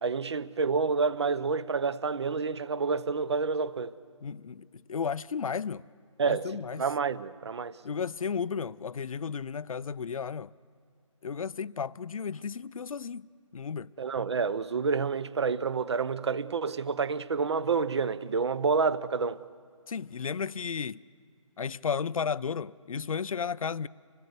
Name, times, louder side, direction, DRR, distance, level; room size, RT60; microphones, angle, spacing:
voice 1, 0.0-3.9 6.2-6.5 6.8-7.8 14.0-19.4, right 5 dB, 55° right, 0.7 m, -28 dB
voice 2, 4.2-5.8 6.3-6.8 7.8-10.5 11.2-13.3 13.5-13.9 19.9-21.0 21.6-23.9, left 6 dB, 85° left, 0.5 m, -33 dB
26.5 x 18.0 x 8.1 m
hypercardioid pair, 165°, 17 cm